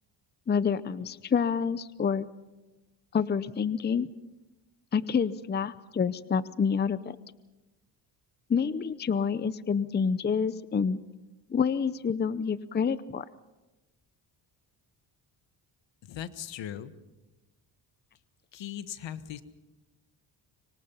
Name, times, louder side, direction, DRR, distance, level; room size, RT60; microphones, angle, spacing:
voice 1, 0.5-2.3 3.1-4.1 4.9-7.2 8.5-11.0 11.5-13.2, left 6 dB, 25° left, 16 dB, 0.7 m, -28 dB
voice 2, 16.0-16.9 18.5-19.4, left 10 dB, 70° left, 12 dB, 1.5 m, -39 dB
25.5 x 24.5 x 5.6 m, 1.0 s
cardioid pair, 105°, 45 cm